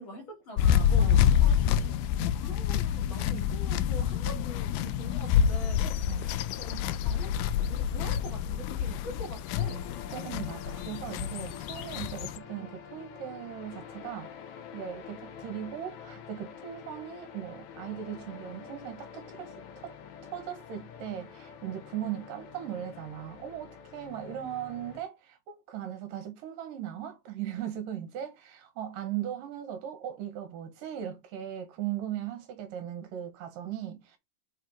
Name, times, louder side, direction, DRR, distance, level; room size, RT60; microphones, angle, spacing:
voice 1, 0.0-7.3 7.7-9.9, equal, 40° left, 2.5 m, -44 dB
sound 1, 0.6-12.4, left 9 dB, 85° left, 1.9 m, -27 dB
voice 2, 1.0-1.3 6.1-6.3 10.1-14.3 14.7-20.0 20.3-34.2, right 10 dB, 70° right, 2.7 m, -38 dB
sound 2, 5.4-25.0, left 7 dB, 65° left, 2.0 m, -47 dB
5.6 x 4.4 x 5.0 m
omnidirectional pair, 4.2 m